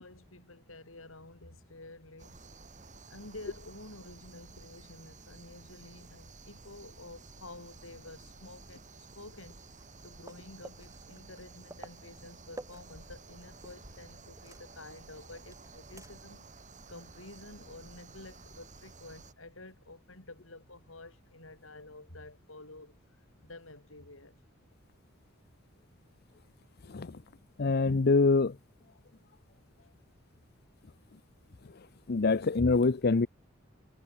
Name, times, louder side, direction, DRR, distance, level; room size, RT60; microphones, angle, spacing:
voice 1, 0.0-2.4 3.1-9.6 10.0-16.5 16.9-23.0 23.4-24.4, left 2 dB, 80° left, 5.9 m, -50 dB
sound 1, 2.2-19.3, right 3 dB, 40° right, 5.1 m, -53 dB
sound 2, 9.4-14.0 14.3-16.4 16.8-16.9 19.4-19.5, right 1 dB, 15° right, 7.8 m, -53 dB
voice 2, 27.6-28.6 32.1-33.3, left 3 dB, 50° left, 0.6 m, -25 dB
head